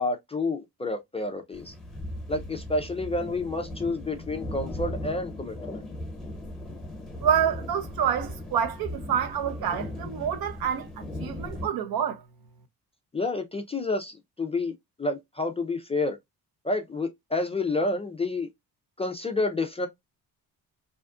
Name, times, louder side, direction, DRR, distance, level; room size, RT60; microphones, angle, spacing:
voice 1, 0.0-1.7 2.3-5.8 13.1-14.7 15.0-16.2 16.6-18.5 19.0-19.9, left 2 dB, 15° left, 0.3 m, -29 dB
sound 1, 1.5-11.7, left 1 dB, ahead, 1.0 m, -38 dB
voice 2, 7.2-12.2, right 8 dB, 65° right, 0.6 m, -27 dB
2.7 x 2.3 x 2.3 m
cardioid pair, 120°, 39 cm